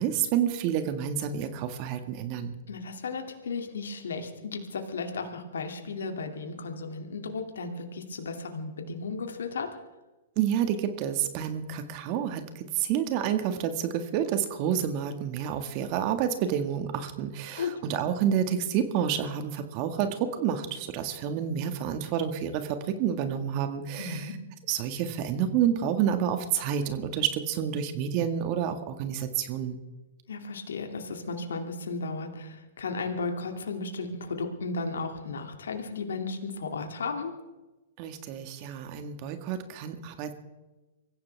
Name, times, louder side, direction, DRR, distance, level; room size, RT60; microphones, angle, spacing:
voice 1, 0.0-2.5 10.4-24.3 24.7-29.8 38.0-40.3, right 9 dB, 45° right, 8 dB, 1.9 m, -29 dB
voice 2, 2.7-9.7 17.6-17.7 24.0-24.3 30.3-37.3, left 4 dB, 80° left, 4 dB, 2.6 m, -34 dB
24.5 x 15.5 x 3.5 m, 1.1 s
hypercardioid pair, 115°, 0 cm